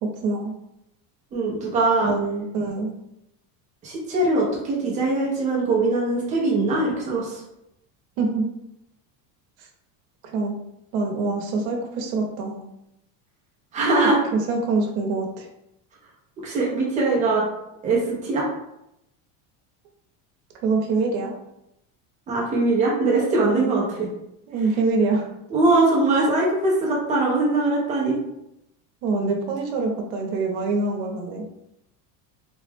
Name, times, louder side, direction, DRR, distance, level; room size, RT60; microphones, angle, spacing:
voice 1, 0.0-0.6 2.0-2.9 8.2-8.5 9.6-9.7 10.2-10.5 10.9-12.6 14.5-15.5 20.6-21.4 23.5-23.8 24.5-25.3 29.0-31.4, right 3 dB, 65° right, 1 dB, 0.8 m, -25 dB
voice 2, 1.3-2.1 3.8-7.4 13.7-14.2 16.4-17.4 17.8-18.5 22.3-24.1 25.5-28.2, right 2 dB, 15° right, -4 dB, 0.4 m, -21 dB
3.4 x 2.1 x 3.2 m, 0.84 s
cardioid pair, 170°, 49 cm